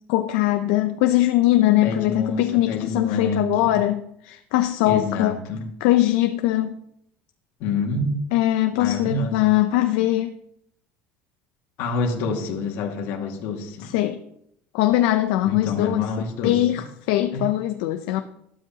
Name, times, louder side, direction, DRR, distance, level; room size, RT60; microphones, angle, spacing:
voice 1, 0.1-5.4 5.8-6.7 8.3-10.3 13.8-14.2 14.7-16.1 16.4-18.2, left 15 dB, 80° left, 7 dB, 0.7 m, -21 dB
voice 2, 1.8-3.8 4.9-5.6 7.6-8.2 8.8-9.5 11.8-13.9 15.4-16.6 17.3-17.5, left 3 dB, 65° left, 2 dB, 2.1 m, -27 dB
12.5 x 12.5 x 2.9 m, 0.74 s
cardioid pair, 165°, 5 cm